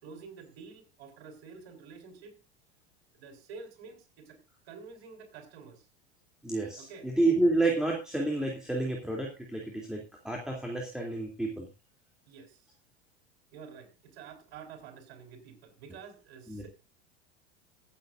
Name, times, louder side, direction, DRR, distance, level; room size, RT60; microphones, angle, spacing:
voice 1, 0.0-2.4 3.1-4.4 4.6-5.9 6.8-7.1 12.3-12.6 13.5-16.7, right 5 dB, 65° right, 4.8 m, -49 dB
voice 2, 6.4-11.7 16.5-16.6, right 2 dB, ahead, 3.1 m, -30 dB
24.5 x 8.4 x 2.6 m
hypercardioid pair, 90°, 32 cm